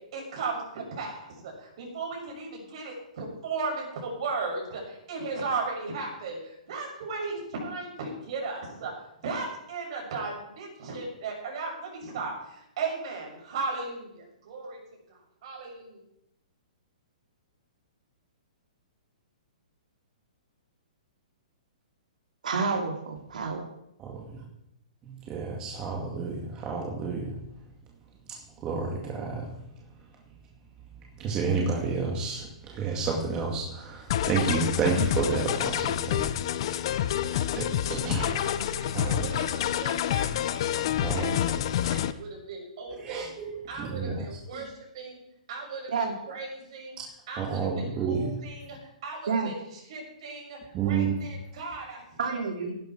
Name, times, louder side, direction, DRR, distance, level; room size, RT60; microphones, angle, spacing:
voice 1, 0.1-8.9 9.2-14.8 15.1-16.0 38.4-40.8 41.1-43.3 43.7-45.2 45.5-47.0 47.3-49.6 49.9-52.0, right 4 dB, 45° right, 0 dB, 7.2 m, -36 dB
voice 2, 22.4-23.6 45.9-46.1 49.3-49.5 52.2-52.7, right 4 dB, 80° right, 2 dB, 2.7 m, -29 dB
voice 3, 24.0-24.4 25.1-27.3 28.3-29.5 31.2-36.3 36.6-38.5 38.9-39.3 40.9-41.6 43.0-44.3 44.5-44.6 47.4-48.4 50.7-51.3, right 4 dB, 20° right, -1 dB, 2.0 m, -31 dB
sound 1, 34.1-42.1, left 11 dB, 40° left, 0.7 m, -28 dB
17.0 x 12.0 x 4.6 m, 0.81 s
hypercardioid pair, 170°, 4 cm